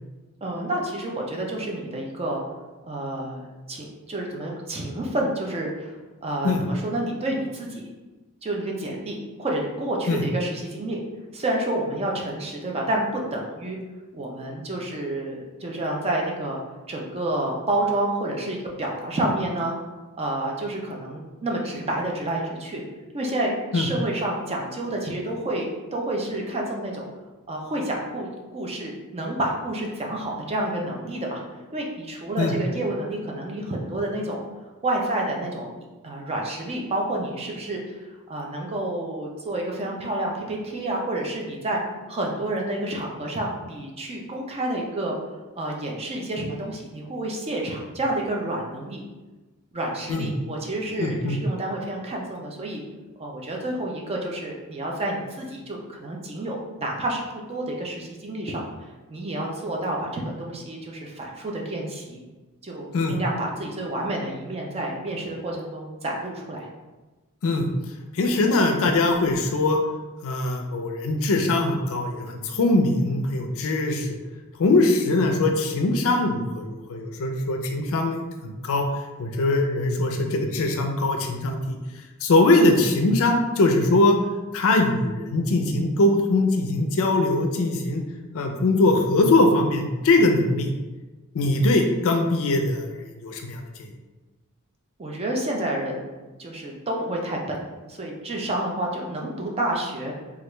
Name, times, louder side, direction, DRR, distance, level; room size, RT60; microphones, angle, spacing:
voice 1, 0.4-2.4 2.9-3.4 3.7-5.9 6.2-7.8 8.4-11.0 11.3-13.8 14.1-16.6 16.9-19.7 20.2-22.8 23.1-27.1 27.5-31.4 31.7-34.4 34.8-35.7 36.0-38.0 38.3-41.8 42.1-45.2 45.6-49.0 49.7-52.8 53.2-57.2 57.5-58.6 59.1-62.2 62.6-66.7 95.0-96.0 96.4-97.6 97.9-100.1, right 1 dB, 25° right, -1 dB, 0.5 m, -29 dB
voice 2, 51.0-51.4 62.9-63.2 67.4-67.7 68.1-69.8 70.2-74.2 74.6-78.9 79.2-81.8 82.2-84.2 84.5-88.0 88.3-90.7 91.3-93.9, left 2 dB, 65° left, 3 dB, 0.4 m, -22 dB
3.3 x 2.4 x 3.0 m, 1.2 s
head